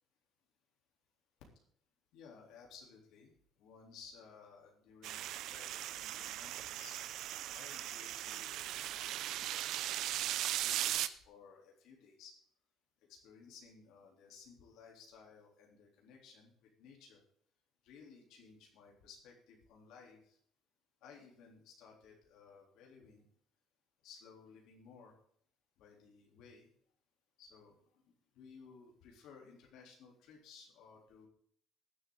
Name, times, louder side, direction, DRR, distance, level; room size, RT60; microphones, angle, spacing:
voice 1, 2.1-3.3 3.6-7.0 7.5-10.0 10.6-12.3 13.1-16.5 16.8-17.2 17.8-20.4 21.0-23.2 24.0-25.1 25.8-26.7 27.4-28.0 28.3-31.3, left 5 dB, 75° left, -1 dB, 3.6 m, -58 dB
sound 1, 5.0-11.1, right 13 dB, 65° right, 0.6 m, -38 dB
20.5 x 8.1 x 4.0 m, 0.63 s
cardioid pair, 155°, 0 cm